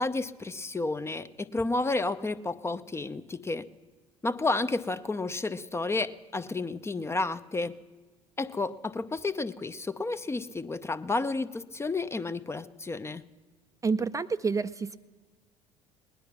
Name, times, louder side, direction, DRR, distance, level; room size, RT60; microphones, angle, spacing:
voice 1, 0.0-3.7 4.2-7.8 8.4-13.2, left 3 dB, 20° left, 12 dB, 0.6 m, -31 dB
voice 2, 13.8-15.0, right 4 dB, 25° right, 11 dB, 0.5 m, -28 dB
19.0 x 10.5 x 6.0 m, 1.4 s
hypercardioid pair, 60°, 14 cm